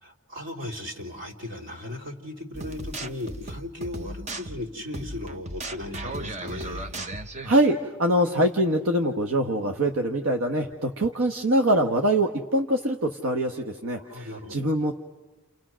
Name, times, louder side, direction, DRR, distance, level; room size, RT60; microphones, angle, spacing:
voice 1, 0.0-6.9 14.1-14.6, left 1 dB, 60° right, -2 dB, 3.9 m, -37 dB
sound 1, 2.5-7.6, right 2 dB, 35° right, 0.8 m, -36 dB
voice 2, 7.4-14.9, right 1 dB, 85° right, 3 dB, 1.3 m, -24 dB
30.0 x 29.5 x 6.3 m, 1.2 s
head